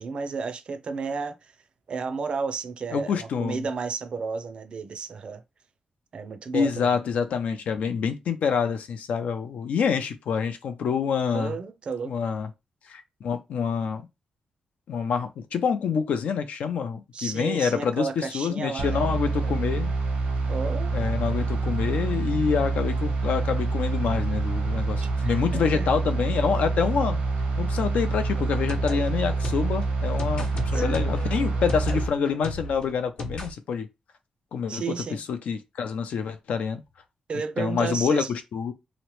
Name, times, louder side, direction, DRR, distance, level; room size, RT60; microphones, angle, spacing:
voice 1, 0.0-1.5 1.9-5.4 6.1-6.9 11.3-12.1 17.1-19.0 19.3-19.5 20.5-20.9 25.0-25.9 30.7-31.0 34.7-35.2 37.3-38.3, right 5 dB, 45° right, 0.4 m, -32 dB
voice 2, 2.9-3.7 6.5-11.5 12.1-12.5 12.9-14.1 14.9-19.9 20.9-27.2 27.6-33.9 34.5-34.8 35.1-36.8 37.6-38.7, left 6 dB, 75° left, 0.4 m, -27 dB
sound 1, 18.8-32.1, right 3 dB, 85° right, 0.7 m, -26 dB
sound 2, 28.3-33.5, left 2 dB, 50° left, 0.7 m, -36 dB
2.9 x 2.1 x 3.0 m
wide cardioid pair, 140°, 2 cm